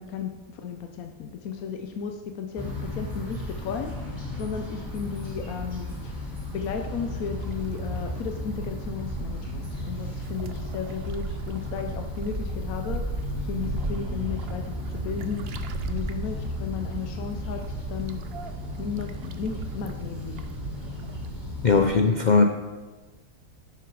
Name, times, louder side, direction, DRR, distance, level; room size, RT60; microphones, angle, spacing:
voice 1, 0.0-6.2 6.5-13.1 13.4-15.5 15.9-18.2 18.8-20.4, left 6 dB, 80° left, 5 dB, 1.2 m, -34 dB
sound 1, 2.6-21.9, left 1 dB, 30° left, 3.1 m, -35 dB
sound 2, 6.9-21.3, right 5 dB, 55° right, 0.8 m, -38 dB
voice 2, 21.6-22.4, left 4 dB, 60° left, 4 dB, 0.4 m, -19 dB
10.5 x 7.1 x 4.8 m, 1.3 s
omnidirectional pair, 1.5 m